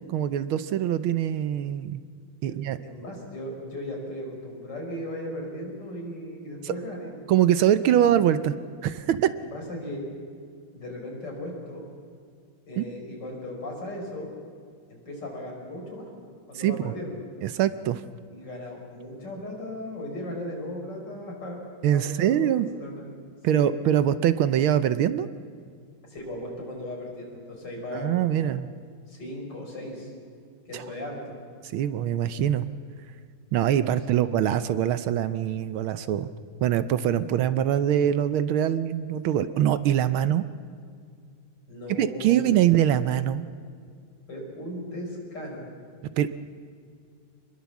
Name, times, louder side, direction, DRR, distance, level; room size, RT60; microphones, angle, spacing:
voice 1, 0.1-2.0 2.4-2.8 6.6-6.7 7.3-8.5 8.8-9.3 12.8-12.9 16.5-16.9 17.4-18.0 21.8-22.7 23.4-25.3 27.9-28.7 30.7-30.8 31.7-32.7 33.5-36.3 36.6-40.4 41.9-43.4 46.2-46.3, right 10 dB, 75° right, 13 dB, 1.6 m, -23 dB
voice 2, 2.8-7.1 7.9-8.2 9.4-10.1 10.7-11.8 12.7-14.4 14.9-17.3 18.3-21.6 21.9-23.0 23.5-23.7 26.1-28.6 29.1-30.1 30.7-31.4 34.1-34.3 41.7-42.6 44.3-45.7, left 1 dB, 50° left, 0 dB, 5.6 m, -37 dB
26.0 x 21.0 x 7.2 m, 2.2 s
omnidirectional pair, 2.4 m